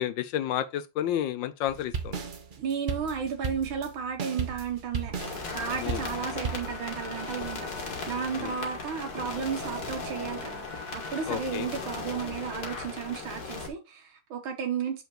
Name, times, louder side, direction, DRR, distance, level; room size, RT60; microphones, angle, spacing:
voice 1, 0.0-2.2 5.8-6.0 8.4-8.5 11.3-11.7, left 11 dB, 75° left, 1.2 m, -30 dB
sound 1, 1.7-6.8, right 5 dB, 65° right, 0.5 m, -35 dB
voice 2, 2.6-5.1 5.5-15.0, right 7 dB, 85° right, 1.8 m, -33 dB
sound 2, 5.2-13.7, left 3 dB, 50° left, 2.0 m, -37 dB
7.2 x 5.7 x 2.9 m
omnidirectional pair, 2.2 m